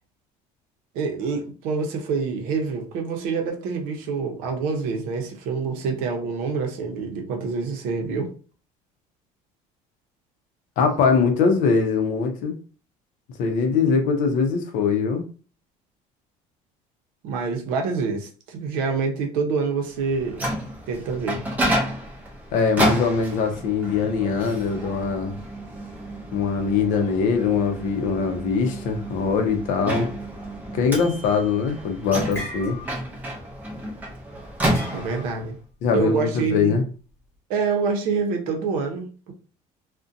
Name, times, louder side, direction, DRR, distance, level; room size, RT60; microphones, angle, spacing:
voice 1, 0.9-8.3 11.2-11.5 17.2-20.5 20.9-21.5 34.9-35.6 35.9-36.8 37.5-39.3, right 4 dB, 70° right, 3 dB, 0.7 m, -26 dB
voice 2, 10.8-12.5 13.4-15.3 22.5-25.3 26.3-30.1 30.7-32.8 35.8-36.8, left 5 dB, 55° left, 6 dB, 0.6 m, -22 dB
Microwave oven, 20.0-35.5, right 1 dB, 10° right, 0.5 m, -30 dB
sound 1, 31.5-31.8 32.1-33.2 33.5-33.7 34.7-35.4, left 1 dB, 15° left, 0.9 m, -37 dB
2.5 x 2.1 x 2.5 m, 0.38 s
cardioid pair, 170°, 15 cm